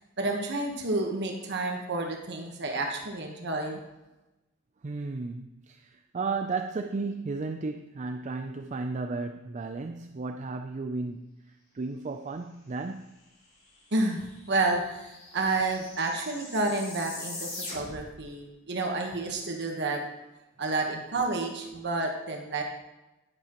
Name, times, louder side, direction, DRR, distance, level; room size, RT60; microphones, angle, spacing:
voice 1, 0.2-3.8 13.9-20.0 20.6-22.6, right 2 dB, 60° right, 1.2 m, -30 dB
voice 2, 4.8-11.3 11.7-13.1, right 3 dB, 35° right, 0.4 m, -34 dB
sound 1, 13.7-13.8 14.0-18.2, left 2 dB, 35° left, 3.1 m, -42 dB
11.0 x 9.9 x 3.0 m
head